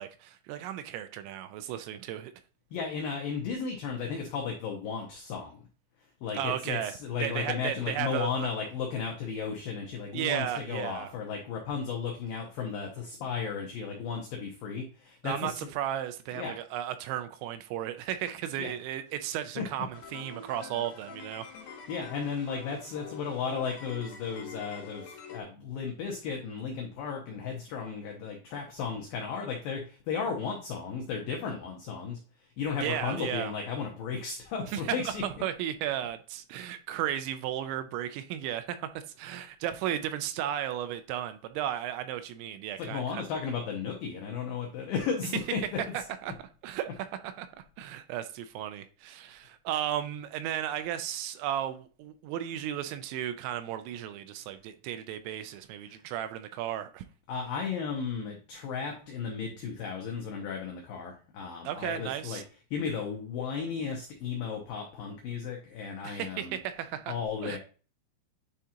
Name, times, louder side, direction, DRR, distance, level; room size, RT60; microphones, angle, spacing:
voice 1, 0.0-2.3 6.4-8.5 10.1-11.1 15.2-21.5 32.8-33.5 34.6-43.2 45.9-47.5 47.8-57.0 61.6-62.4 66.0-67.1 67.4-67.6, right 11 dB, 85° right, 2.8 m, -34 dB
voice 2, 2.7-5.6 6.2-15.6 16.3-16.5 18.6-18.7 19.6-19.7 21.9-32.2 32.6-35.2 42.8-45.6 57.3-62.4 62.7-66.6 67.1-67.6, left 6 dB, 85° left, 2.0 m, -34 dB
sound 1, 19.9-25.4, left 5 dB, 70° left, 3.4 m, -46 dB
10.0 x 3.7 x 2.9 m
omnidirectional pair, 5.4 m